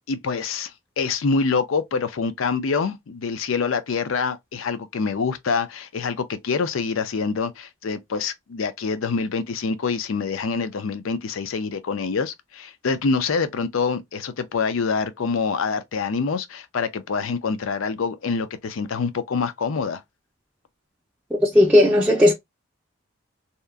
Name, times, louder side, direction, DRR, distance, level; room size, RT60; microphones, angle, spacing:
voice 1, 0.1-0.7 1.0-20.0, left 5 dB, 85° left, 0.5 m, -26 dB
voice 2, 21.4-22.3, left 1 dB, 5° right, 0.4 m, -15 dB
2.8 x 2.4 x 2.3 m
head